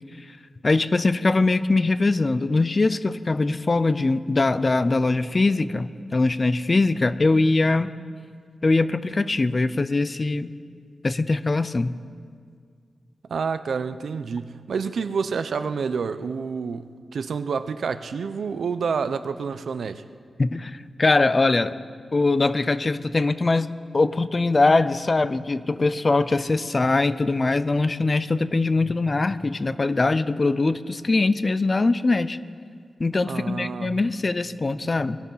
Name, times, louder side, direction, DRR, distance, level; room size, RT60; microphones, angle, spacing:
voice 1, 0.6-7.9 8.6-10.5 11.0-11.9 20.4-21.7 22.1-23.7 23.9-32.4 33.0-35.2, left 3 dB, 30° left, 14 dB, 0.4 m, -22 dB
voice 2, 13.3-20.0 33.3-34.0, right 5 dB, 70° right, 11 dB, 0.6 m, -28 dB
21.0 x 12.5 x 5.5 m, 2.1 s
wide cardioid pair, 150°, 0 cm